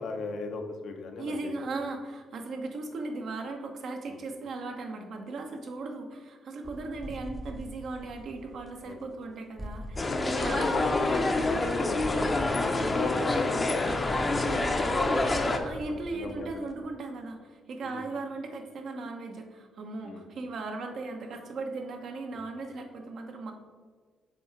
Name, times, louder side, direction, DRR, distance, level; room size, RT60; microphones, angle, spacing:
voice 1, 0.0-1.5 4.1-4.2 8.8-9.0 10.1-11.3 11.7-15.6 16.1-16.6 17.8-18.0 20.0-20.2, left 3 dB, 65° left, 4 dB, 0.8 m, -37 dB
voice 2, 1.2-10.9 15.6-23.5, right 3 dB, 65° right, 3 dB, 0.9 m, -37 dB
sound 1, 6.6-9.3 9.6-16.8, equal, 10° right, 0.9 m, -43 dB
sound 2, 10.0-15.6, left 2 dB, 25° left, 0.7 m, -27 dB
6.9 x 3.6 x 4.5 m, 1.5 s
cardioid pair, 90°, 0 cm